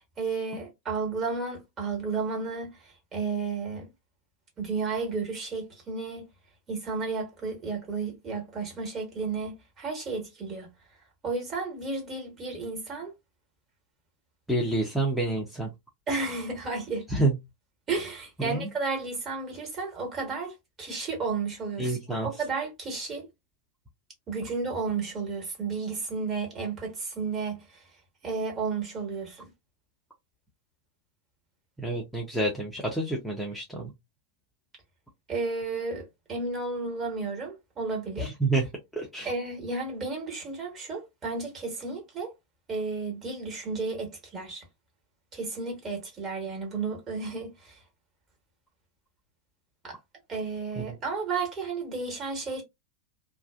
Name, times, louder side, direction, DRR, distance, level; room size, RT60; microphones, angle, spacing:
voice 1, 0.0-2.7 3.1-3.9 4.6-6.3 6.7-10.7 11.2-13.1 16.1-17.0 17.9-23.3 24.3-27.6 28.2-29.5 35.3-38.3 39.2-42.3 42.7-44.6 45.3-47.8 49.8-50.0 50.3-52.6, right 4 dB, 25° right, 1.4 m, -32 dB
voice 2, 14.5-15.7 17.1-17.3 18.4-18.7 21.8-22.3 31.8-33.9 38.2-38.7 39.0-39.3, right 2 dB, ahead, 0.7 m, -28 dB
2.4 x 2.4 x 2.3 m
figure-of-eight pair, 90°, 0 cm